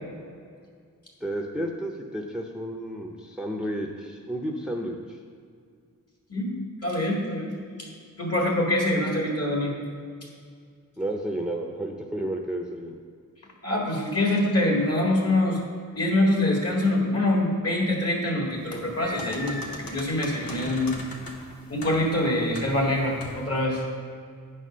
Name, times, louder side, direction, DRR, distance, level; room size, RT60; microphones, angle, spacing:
voice 1, 1.2-5.2 11.0-13.0, right 1 dB, 5° right, 0 dB, 0.6 m, -32 dB
voice 2, 6.8-7.6 8.2-9.7 13.6-15.6 16.0-21.0 21.7-23.8, left 1 dB, 45° left, -2 dB, 2.0 m, -24 dB
sound 1, 18.6-23.6, left 2 dB, 90° left, 1.1 m, -40 dB
9.4 x 4.2 x 6.2 m, 2.2 s
wide cardioid pair, 90°, 34 cm